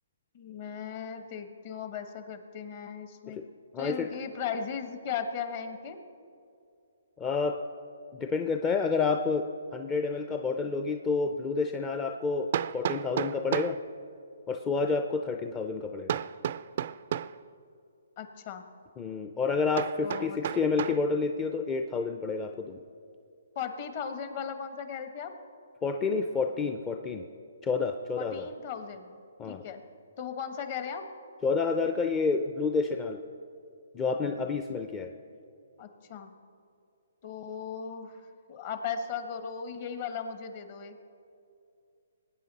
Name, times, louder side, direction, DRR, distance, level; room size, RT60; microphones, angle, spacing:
voice 1, 0.3-3.4 3.8-6.0 18.2-18.6 20.0-20.4 23.5-25.3 28.2-29.8 30.2-31.1 35.8-36.3 37.2-41.0, left 7 dB, 40° left, 8 dB, 1.1 m, -37 dB
voice 2, 3.7-4.1 7.2-7.6 8.1-9.4 9.7-12.5 12.7-13.8 14.5-16.2 19.0-22.8 25.8-27.2 27.6-28.5 29.4-29.6 31.4-33.2 33.9-35.1, left 4 dB, 15° left, 4 dB, 0.5 m, -29 dB
Hammer, 10.9-11.0 12.5-13.8 16.1-17.4 19.8-21.0, right 10 dB, 50° right, 0.3 m, -32 dB
20.5 x 9.1 x 4.1 m, 2.5 s
hypercardioid pair, 150°, 0 cm